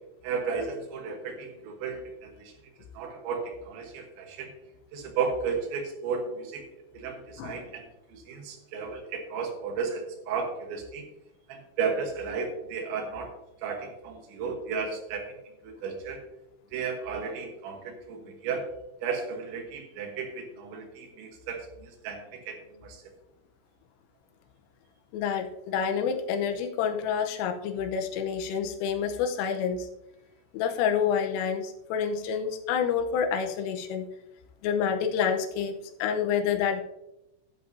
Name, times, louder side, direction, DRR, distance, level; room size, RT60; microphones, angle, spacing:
voice 1, 0.2-2.5 3.0-4.5 4.9-6.6 6.9-11.0 11.5-13.3 13.6-15.3 15.6-16.2 16.7-18.7 19.0-22.6 22.8-23.0, right 5 dB, 70° right, 3 dB, 3.4 m, -34 dB
voice 2, 25.1-29.9 30.5-34.1 34.6-36.8, left 7 dB, 90° left, 6 dB, 3.5 m, -28 dB
11.0 x 11.0 x 2.7 m, 0.90 s
omnidirectional pair, 5.8 m